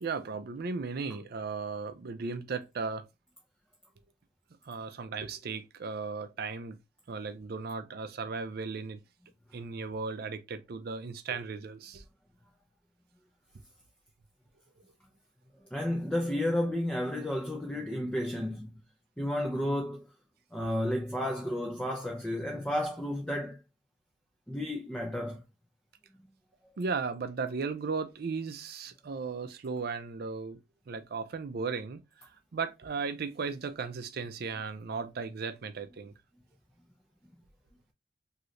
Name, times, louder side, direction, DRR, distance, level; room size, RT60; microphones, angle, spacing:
voice 1, 0.0-3.0 4.6-6.8 7.1-9.0 9.5-12.0 20.6-20.7 26.8-30.6 30.9-36.1, right 4 dB, 55° right, 0.4 m, -36 dB
voice 2, 15.7-18.8 19.2-20.1 20.5-23.6 24.5-25.4, left 1 dB, 5° left, 0.4 m, -32 dB
3.1 x 2.7 x 2.5 m
head